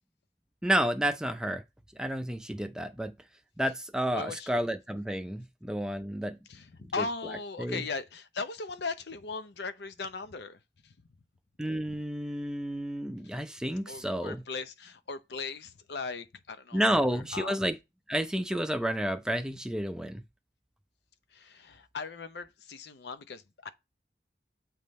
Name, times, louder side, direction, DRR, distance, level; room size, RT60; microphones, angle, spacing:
voice 1, 0.6-1.6 1.9-3.1 3.6-6.4 7.0-7.1 7.6-7.9 11.6-14.4 16.7-17.8 18.1-20.2, right 1 dB, 5° right, 0.4 m, -30 dB
voice 2, 4.1-4.5 6.5-10.6 10.8-10.9 13.9-16.8 17.1-17.6 21.3-23.7, left 4 dB, 75° left, 0.6 m, -38 dB
7.6 x 3.6 x 4.1 m
head